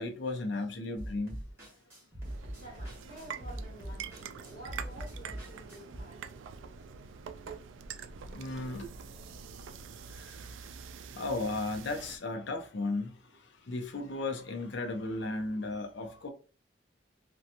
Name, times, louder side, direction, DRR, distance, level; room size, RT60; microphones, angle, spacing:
voice 1, 0.0-1.4 8.3-8.9 10.2-10.4 11.1-16.3, left 2 dB, 70° left, 0.5 m, -35 dB
sound 1, 1.0-6.0, right 1 dB, 15° right, 1.1 m, -43 dB
sound 2, 2.2-12.2, right 6 dB, 85° right, 0.3 m, -45 dB
voice 2, 2.5-6.2, right 1 dB, 50° left, 1.2 m, -50 dB
2.8 x 2.2 x 2.5 m
head